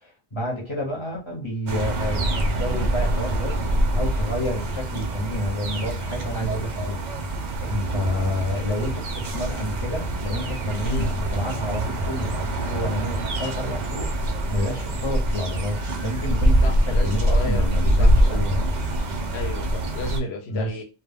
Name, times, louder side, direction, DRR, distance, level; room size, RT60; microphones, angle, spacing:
voice 1, 0.0-3.6 3.9-18.7 20.5-20.7, left 1 dB, 30° left, 0.8 m, -30 dB
sound 1, 1.7-20.2, right 1 dB, 55° right, 0.5 m, -24 dB
voice 2, 16.6-18.4 19.3-20.8, left 1 dB, 75° left, 0.9 m, -33 dB
2.2 x 2.2 x 3.4 m
omnidirectional pair, 1.1 m